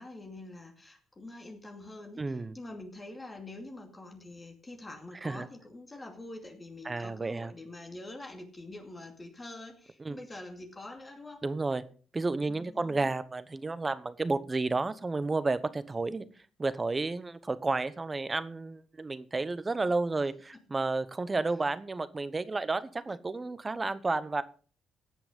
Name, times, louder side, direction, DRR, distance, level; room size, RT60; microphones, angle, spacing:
voice 1, 0.0-11.5 12.5-13.1 20.5-20.6, left 2 dB, 20° left, 3 dB, 2.5 m, -46 dB
voice 2, 2.2-2.6 5.2-5.5 6.8-7.5 10.0-10.2 11.4-11.8 12.1-16.3 16.6-24.4, right 3 dB, 25° right, 15 dB, 1.0 m, -31 dB
17.5 x 6.0 x 5.3 m, 0.41 s
cardioid pair, 90°, 0 cm